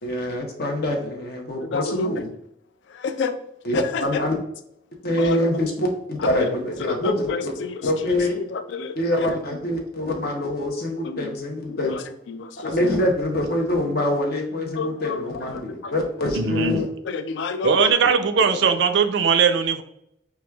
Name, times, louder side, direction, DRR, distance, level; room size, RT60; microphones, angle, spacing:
voice 1, 0.0-2.2 3.6-4.4 5.0-7.5 7.8-8.4 9.0-12.0 12.6-16.9, left 1 dB, 60° left, 0.7 m, -25 dB
voice 2, 1.7-2.2 3.0-3.3 5.2-5.5 6.9-7.1 8.0-8.1 8.5-8.9 11.1-11.3 11.7-12.0 12.3-12.7 14.8-15.2 15.8-15.9 17.1-17.9, left 4 dB, 75° left, 0.3 m, -28 dB
voice 3, 16.3-16.8 17.6-19.8, right 6 dB, 75° right, 0.4 m, -19 dB
5.9 x 2.3 x 2.2 m
head